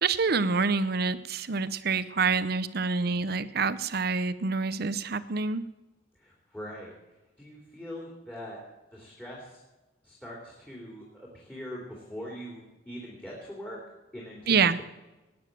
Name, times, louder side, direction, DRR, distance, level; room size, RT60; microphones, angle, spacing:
voice 1, 0.0-5.6 14.5-14.8, right 4 dB, 55° right, 14 dB, 0.8 m, -27 dB
voice 2, 3.0-3.3 6.1-6.9 7.4-8.6 8.9-9.6 10.0-13.8 14.1-14.8, equal, 10° left, -4 dB, 3.2 m, -42 dB
18.0 x 9.7 x 7.5 m, 1.1 s
head